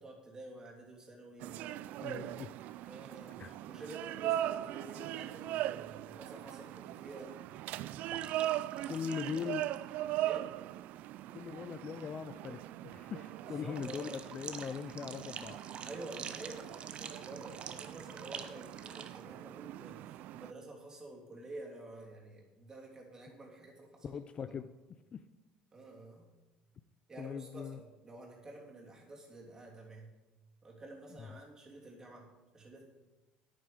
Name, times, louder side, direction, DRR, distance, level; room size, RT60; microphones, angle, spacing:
voice 1, 0.0-1.8 2.8-7.3 9.1-9.5 10.2-10.5 13.4-14.2 15.8-24.2 25.7-26.3 27.1-30.1 30.6-32.8, right 2 dB, 20° right, -2 dB, 3.0 m, -50 dB
sound 1, 1.4-20.5, right 14 dB, 65° right, 0.3 m, -40 dB
voice 2, 2.0-2.9 3.4-3.6 8.9-9.7 11.3-15.6 24.0-24.7 25.1-25.2 27.2-27.8 31.2-31.3, left 7 dB, 35° left, 13 dB, 0.4 m, -41 dB
sound 2, 8.1-9.9 10.2-10.4 13.8-19.2, right 7 dB, 40° right, 0.9 m, -47 dB
9.9 x 9.4 x 5.1 m, 1.1 s
cardioid pair, 115°, 3 cm